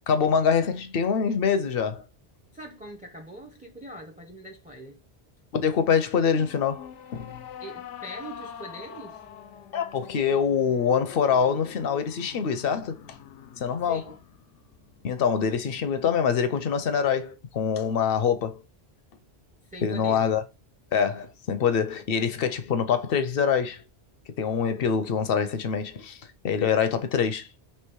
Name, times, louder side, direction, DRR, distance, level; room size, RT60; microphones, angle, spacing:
voice 1, 0.1-2.0 5.5-7.3 9.7-13.2 13.6-14.0 15.0-18.6 19.8-20.4 20.9-23.8 24.4-26.2 26.4-27.5, left 7 dB, 60° left, 0.7 m, -25 dB
voice 2, 2.5-5.0 7.6-9.2 13.9-14.2 19.6-20.3, right 1 dB, 10° right, 0.4 m, -42 dB
sound 1, 6.2-15.6, left 8 dB, 90° left, 0.9 m, -44 dB
3.3 x 2.9 x 4.5 m
omnidirectional pair, 1.2 m